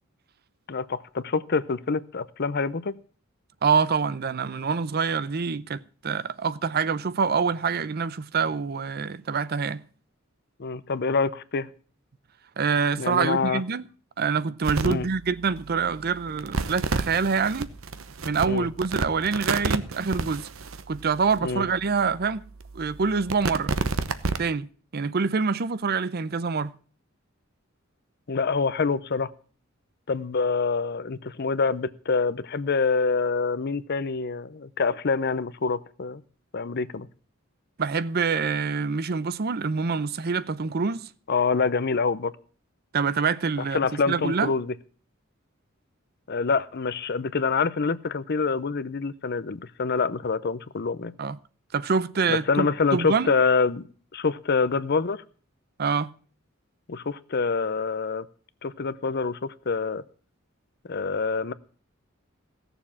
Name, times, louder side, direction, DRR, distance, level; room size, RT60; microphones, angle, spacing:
voice 1, 0.7-3.0 10.6-11.7 13.0-13.6 14.8-15.1 18.5-18.7 21.4-21.7 28.3-29.3 30.1-36.2 36.5-37.1 41.3-42.3 43.6-44.7 46.3-51.1 52.3-53.8 54.1-55.2 56.9-58.3 58.6-60.0 60.9-61.5, left 4 dB, 55° left, 0.7 m, -26 dB
voice 2, 3.6-9.8 12.6-13.8 14.2-17.7 18.2-20.5 20.9-22.4 22.7-23.7 24.4-24.7 24.9-26.7 37.8-41.1 42.9-43.8 44.1-44.5 51.2-51.4 51.7-53.3 55.8-56.1, right 5 dB, 50° right, 0.6 m, -26 dB
sound 1, 14.6-15.0 15.5-15.6 16.3-21.4 22.0-22.1 22.6-24.5, right 3 dB, 85° right, 0.9 m, -29 dB
16.5 x 7.1 x 7.2 m
head